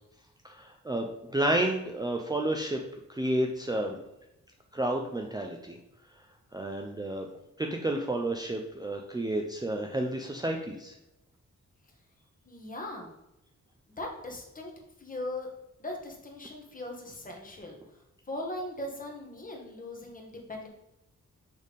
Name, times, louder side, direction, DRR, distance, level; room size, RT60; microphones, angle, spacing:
voice 1, 0.4-2.8 3.1-4.0 4.7-5.8 6.5-7.3 7.6-10.9, right 1 dB, 15° right, 1 dB, 0.6 m, -31 dB
voice 2, 12.4-13.1 14.0-14.7 15.0-15.5 15.8-20.7, left 1 dB, 25° left, 0 dB, 1.5 m, -39 dB
6.6 x 3.5 x 5.1 m, 0.88 s
wide cardioid pair, 120°, 30 cm